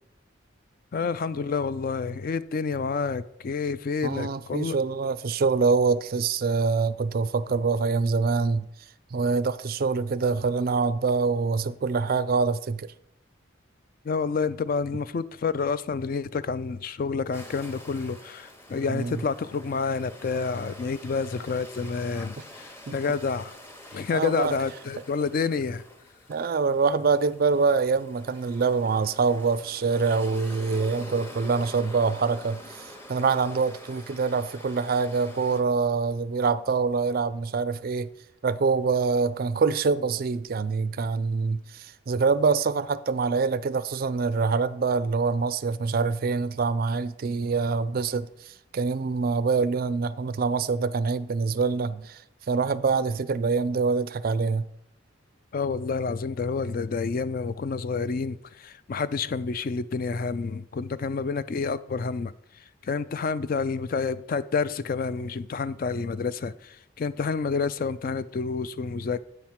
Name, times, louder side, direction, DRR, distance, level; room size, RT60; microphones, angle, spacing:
voice 1, 0.9-4.8 14.0-23.5 23.9-25.8 55.5-62.3 62.8-69.3, left 5 dB, 45° left, 0.3 m, -29 dB
voice 2, 4.0-8.7 9.1-12.9 18.9-19.2 22.9-23.0 24.1-24.6 26.3-32.6 33.1-38.1 38.4-52.2 52.5-54.7, right 4 dB, 45° right, 0.4 m, -25 dB
sound 1, 17.3-35.6, left 1 dB, 10° left, 0.9 m, -46 dB
8.5 x 4.5 x 7.4 m
head